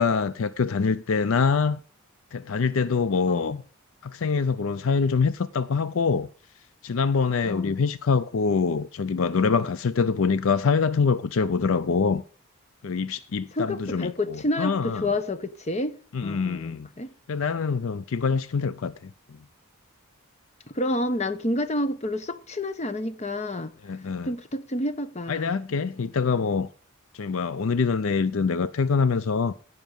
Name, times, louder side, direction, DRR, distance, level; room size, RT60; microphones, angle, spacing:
voice 1, 0.0-1.8 2.3-3.6 4.0-6.3 6.8-12.2 12.8-15.1 16.1-16.9 17.3-19.4 23.8-24.3 25.3-26.7 27.1-29.5, left 5 dB, 65° left, 0.5 m, -25 dB
voice 2, 3.3-3.6 7.4-7.8 13.5-17.1 20.7-23.7 24.2-25.6, left 1 dB, 30° left, 0.9 m, -29 dB
16.5 x 5.9 x 5.3 m
head